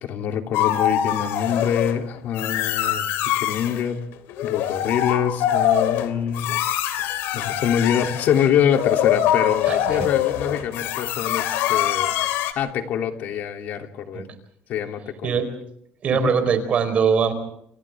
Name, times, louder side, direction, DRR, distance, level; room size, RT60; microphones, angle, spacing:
voice 1, 0.0-4.0 4.4-6.6 7.3-12.1 12.5-14.3 14.7-15.4 16.1-16.3, left 9 dB, 50° left, 4 dB, 3.1 m, -25 dB
sound 1, 0.5-2.0 2.4-3.8 4.3-12.5, left 11 dB, 80° left, 3.1 m, -23 dB
voice 2, 9.7-10.1 14.1-14.2 15.2-15.5 16.0-17.3, right 6 dB, 35° right, 8 dB, 4.5 m, -21 dB
29.5 x 28.5 x 3.7 m, 0.70 s
cardioid pair, 170°, 4 cm